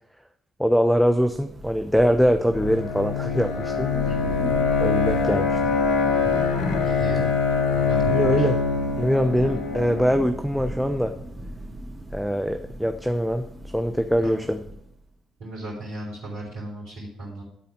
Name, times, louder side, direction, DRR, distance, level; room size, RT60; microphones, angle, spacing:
voice 1, 0.6-3.9 4.8-5.6 8.1-8.6 9.0-11.1 12.1-13.4 13.7-14.6, equal, ahead, 8 dB, 0.6 m, -22 dB
Thunder / Rain, 1.0-15.1, right 1 dB, 20° right, 2.0 m, -38 dB
Bowed string instrument, 2.5-10.3, left 5 dB, 65° left, 1.0 m, -24 dB
voice 2, 6.8-7.3 7.7-8.5 14.2-14.4 15.4-17.4, right 2 dB, 65° right, -7 dB, 4.0 m, -35 dB
12.0 x 4.2 x 6.3 m, 0.74 s
figure-of-eight pair, 45°, 0 cm